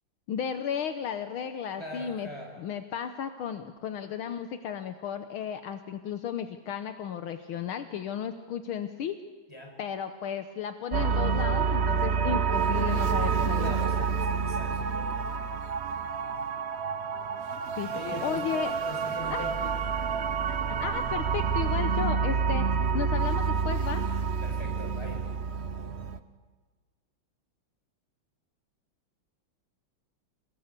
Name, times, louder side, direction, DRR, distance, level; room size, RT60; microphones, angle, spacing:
voice 1, 0.3-2.3 2.6-9.2 9.8-13.7 17.7-18.7 19.3-19.5 20.5-22.7 22.9-24.0, left 8 dB, 75° left, 9 dB, 1.8 m, -34 dB
voice 2, 1.8-2.5 9.5-9.8 13.6-15.3 17.9-19.8 24.4-25.3, left 1 dB, 10° left, 1 dB, 5.6 m, -41 dB
sound 1, 10.9-26.2, right 6 dB, 50° right, 0.7 m, -28 dB
28.0 x 19.0 x 8.3 m, 1.3 s
omnidirectional pair, 2.4 m